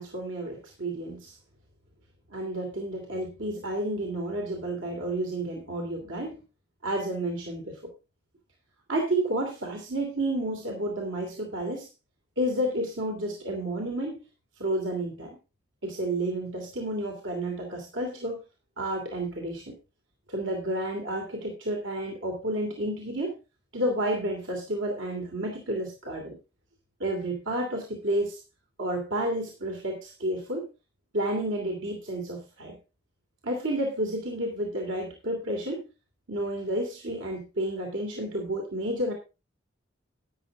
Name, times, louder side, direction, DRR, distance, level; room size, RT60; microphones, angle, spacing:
voice 1, 0.0-1.4 2.3-6.4 6.8-7.8 8.9-11.9 12.4-14.2 14.6-15.4 15.8-18.4 18.8-19.7 20.3-23.3 23.7-26.4 27.0-28.4 28.8-30.7 31.1-32.8 33.4-35.8 36.3-39.1, right 1 dB, 90° right, 1 dB, 2.8 m, -31 dB
12.5 x 10.0 x 3.6 m, 0.29 s
head